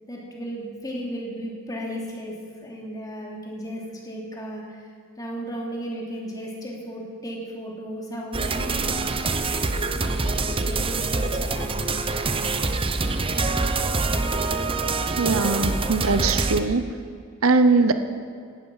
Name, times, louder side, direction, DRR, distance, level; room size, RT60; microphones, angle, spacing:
voice 1, 0.1-2.4 2.6-4.9 5.2-9.2 9.9-12.0 12.3-12.6, equal, 20° left, -3 dB, 3.1 m, -35 dB
sound 1, 8.3-16.6, right 3 dB, 25° right, 0.7 m, -25 dB
voice 2, 15.2-16.9 17.4-17.9, right 3 dB, 80° right, 10 dB, 0.9 m, -20 dB
17.0 x 12.5 x 5.7 m, 2.3 s
head